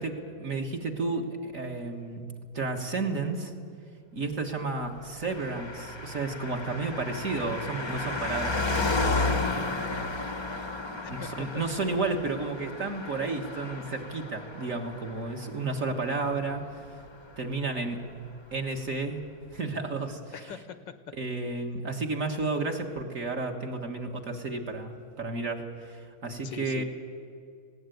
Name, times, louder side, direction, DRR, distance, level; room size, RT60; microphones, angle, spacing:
voice 1, 0.0-2.3 2.5-3.5 4.1-8.6 9.5-9.7 11.1-16.8 17.4-18.0 18.5-19.2 19.5-20.5 21.1-26.8, right 3 dB, 40° right, 3 dB, 1.7 m, -32 dB
Car passing by, 5.2-17.1 17.3-17.4, left 3 dB, 20° left, 0.7 m, -33 dB
voice 2, 11.0-11.9 20.3-21.1 26.4-26.8, left 8 dB, 70° left, 11 dB, 1.4 m, -42 dB
19.5 x 16.5 x 9.2 m, 2.3 s
omnidirectional pair, 2.3 m